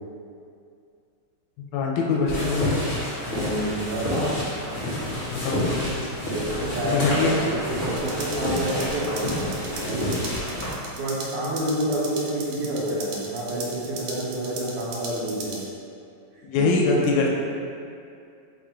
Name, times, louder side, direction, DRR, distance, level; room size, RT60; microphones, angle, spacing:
voice 1, 1.7-2.8 5.3-5.9 6.8-7.3 16.5-17.3, left 3 dB, 75° left, -1 dB, 1.4 m, -23 dB
sound 1, 2.3-10.7, left 1 dB, 35° left, 0.9 m, -29 dB
voice 2, 3.2-4.4 6.3-10.1 11.0-15.6 16.6-16.7, right 1 dB, 65° right, -7 dB, 1.2 m, -28 dB
sound 2, 8.0-15.6, right 3 dB, 90° right, 1.5 m, -38 dB
3.5 x 2.5 x 4.3 m, 2.4 s
omnidirectional pair, 2.4 m